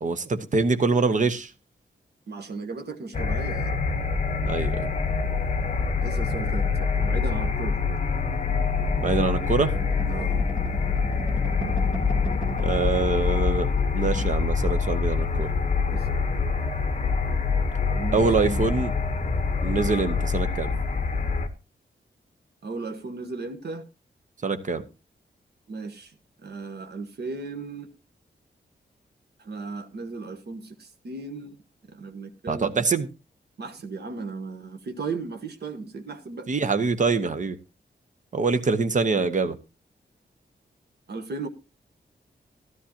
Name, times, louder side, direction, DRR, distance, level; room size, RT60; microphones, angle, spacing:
voice 1, 0.0-1.5 4.4-4.9 9.0-9.7 12.6-13.7 13.9-15.6 18.1-18.9 19.6-20.7 24.4-24.8 32.5-33.1 36.5-37.6 38.3-39.6, right 4 dB, 45° right, 9 dB, 0.9 m, -24 dB
voice 2, 2.3-3.7 6.0-7.8 10.1-10.4 15.9-16.1 17.9-18.9 22.6-23.8 25.7-26.1 26.4-27.9 29.4-31.6 31.9-32.9 33.6-36.5 41.1-41.5, right 4 dB, 65° right, 6 dB, 1.2 m, -36 dB
sound 1, 3.1-21.5, left 5 dB, 40° left, 1.1 m, -25 dB
sound 2, 8.5-13.0 13.3-13.5 13.7-14.3, equal, 5° right, 2.9 m, -37 dB
13.0 x 12.5 x 2.9 m, 0.28 s
wide cardioid pair, 180°, 18 cm